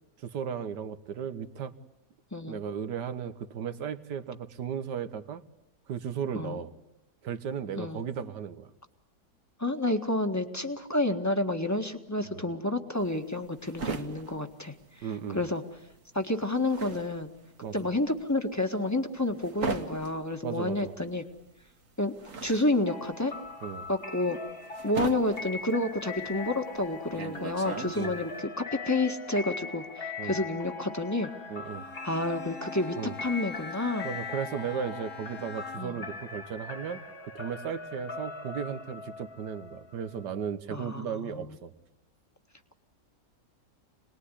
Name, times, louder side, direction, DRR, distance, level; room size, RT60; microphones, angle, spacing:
voice 1, 0.2-1.7 2.4-5.4 5.9-6.7 7.2-8.7 12.3-12.4 15.0-15.4 17.6-17.7 20.4-20.9 23.6-23.9 28.0-28.2 30.2-30.4 31.5-31.9 33.0-33.2 34.0-37.0 37.3-41.7, right 7 dB, 90° right, 12 dB, 1.8 m, -35 dB
voice 2, 9.6-15.1 15.3-15.6 16.1-17.3 17.7-21.2 22.0-22.1 22.4-23.3 23.9-24.4 24.8-31.3 32.0-34.1 35.8-36.0 40.7-41.4, left 2 dB, 10° left, 5 dB, 1.6 m, -30 dB
sound 1, 13.0-15.5 15.8-28.4, right 4 dB, 50° right, 2.0 m, -39 dB
sound 2, 22.8-40.4, left 4 dB, 35° left, 1.8 m, -41 dB
Bowed string instrument, 31.6-36.1, left 5 dB, 60° left, 2.0 m, -44 dB
27.0 x 20.5 x 10.0 m, 0.86 s
omnidirectional pair, 1.8 m